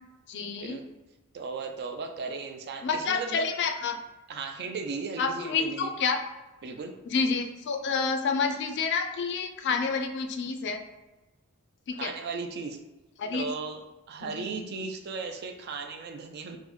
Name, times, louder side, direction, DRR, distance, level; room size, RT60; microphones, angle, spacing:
voice 1, 0.3-0.8 2.8-4.0 5.2-6.2 7.1-10.8 11.9-12.1 13.2-13.4 14.2-14.4, left 5 dB, 55° left, 6 dB, 0.4 m, -29 dB
voice 2, 1.3-3.5 4.3-5.9 6.6-6.9 11.9-12.8 13.3-16.6, right 4 dB, 50° right, 5 dB, 0.4 m, -36 dB
3.8 x 2.1 x 3.0 m, 1.1 s
head